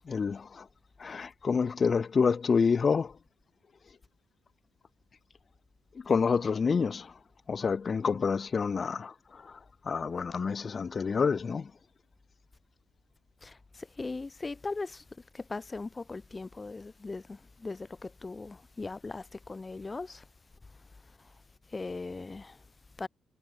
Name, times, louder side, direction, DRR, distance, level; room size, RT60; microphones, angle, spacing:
voice 1, 0.1-0.7 1.0-3.1 6.0-7.1 7.5-9.6 9.8-11.7, left 5 dB, 40° left, 0.4 m, -28 dB
voice 2, 14.0-15.0 15.3-20.2 21.7-22.6 23.0-23.1, left 3 dB, 25° left, 1.6 m, -39 dB
cardioid pair, 90°, 0 cm